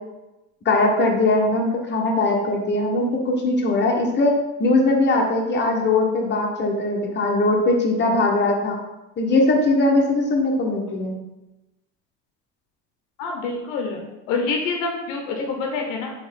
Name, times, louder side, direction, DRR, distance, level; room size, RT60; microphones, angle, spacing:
voice 1, 0.6-4.3 4.6-8.8 9.2-11.2, left 2 dB, 35° left, 0 dB, 1.0 m, -20 dB
voice 2, 13.2-14.0 14.3-16.1, left 4 dB, 80° left, 2 dB, 0.8 m, -26 dB
4.3 x 3.1 x 3.6 m, 0.98 s
supercardioid pair, 95°, 32 cm